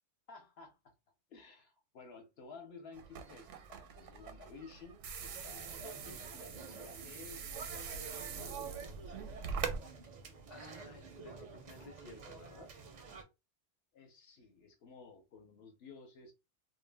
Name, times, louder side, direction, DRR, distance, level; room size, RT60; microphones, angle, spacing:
voice 1, 0.3-0.8 1.3-7.5 8.3-9.2 13.9-16.3, left 4 dB, 60° left, 0.8 m, -54 dB
sound 1, 2.9-9.8, right 6 dB, 80° right, 0.9 m, -43 dB
sound 2, 5.2-13.2, right 5 dB, 55° right, 0.5 m, -49 dB
voice 2, 10.2-12.7, left 2 dB, 40° left, 0.6 m, -54 dB
2.3 x 2.1 x 3.2 m
omnidirectional pair, 1.2 m